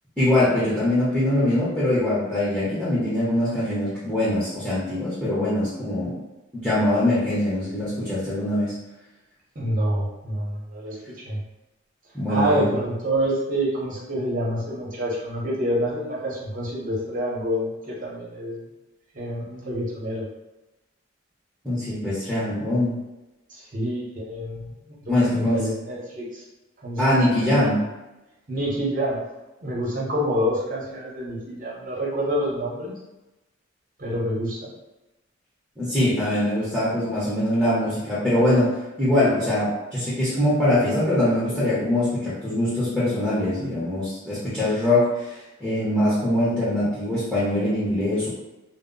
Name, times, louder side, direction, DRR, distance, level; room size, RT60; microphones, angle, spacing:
voice 1, 0.2-6.2 6.5-8.8 12.1-12.7 21.6-23.0 25.1-25.7 27.0-27.8 35.8-48.3, left 1 dB, ahead, -10 dB, 0.7 m, -23 dB
voice 2, 9.5-11.4 12.3-18.6 19.1-20.2 23.5-24.7 25.0-26.4 26.8-27.3 28.5-29.2 29.6-32.9 34.0-34.6, equal, 40° right, -5 dB, 0.8 m, -27 dB
2.0 x 2.0 x 3.7 m, 1.0 s
head